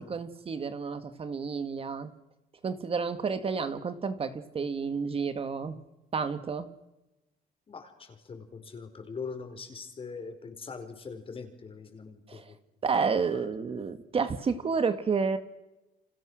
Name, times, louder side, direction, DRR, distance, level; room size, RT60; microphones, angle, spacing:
voice 1, 0.0-2.1 2.6-5.8 6.1-6.7 12.3-12.5 12.8-15.4, right 5 dB, 35° right, 10 dB, 1.8 m, -30 dB
voice 2, 7.7-12.5 13.0-13.4, left 5 dB, 35° left, 6 dB, 4.9 m, -42 dB
30.0 x 25.5 x 6.4 m, 0.98 s
cardioid pair, 110°, 17 cm